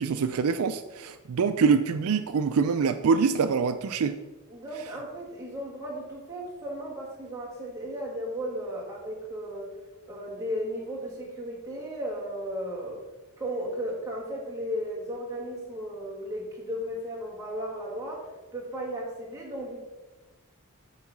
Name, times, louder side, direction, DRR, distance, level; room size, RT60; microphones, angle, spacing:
voice 1, 0.0-4.2, right 5 dB, 75° right, 10 dB, 0.4 m, -25 dB
voice 2, 4.5-9.7 10.1-13.0 13.4-19.9, equal, 15° right, -4 dB, 1.9 m, -35 dB
8.1 x 3.9 x 6.0 m, 1.2 s
head